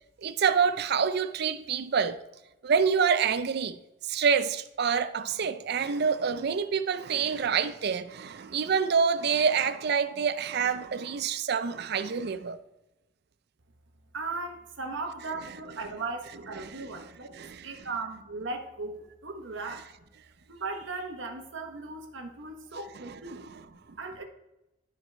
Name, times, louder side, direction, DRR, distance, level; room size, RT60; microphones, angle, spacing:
voice 1, 0.2-2.2 2.6-3.8 4.1-12.6 16.6-16.8 17.3-17.7 23.1-23.5, right 6 dB, 55° right, 0.5 m, -27 dB
voice 2, 14.1-17.4 17.6-19.9 20.5-24.2, right 3 dB, 75° right, 1.0 m, -37 dB
12.0 x 4.6 x 3.3 m
head